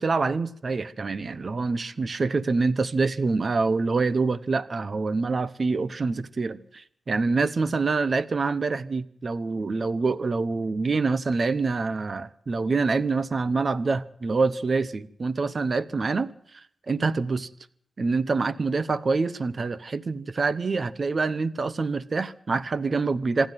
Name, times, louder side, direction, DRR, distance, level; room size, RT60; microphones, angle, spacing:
voice 1, 0.0-17.5 18.0-23.5, right 4 dB, 40° right, 0.9 m, -26 dB
26.0 x 11.5 x 9.2 m
wide cardioid pair, 160°, 0 cm